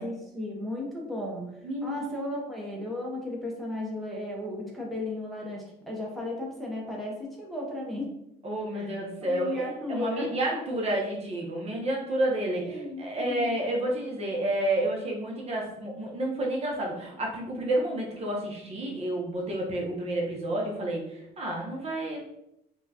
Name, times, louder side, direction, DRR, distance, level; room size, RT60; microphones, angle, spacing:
voice 1, 0.0-1.5 1.8-8.1 8.7-9.0 9.3-10.3 12.5-13.5, left 1 dB, ahead, -3 dB, 0.8 m, -35 dB
voice 2, 1.6-2.2 8.4-22.2, right 1 dB, 40° right, -1 dB, 0.9 m, -30 dB
4.3 x 2.3 x 2.8 m, 0.84 s
cardioid pair, 110°, 17 cm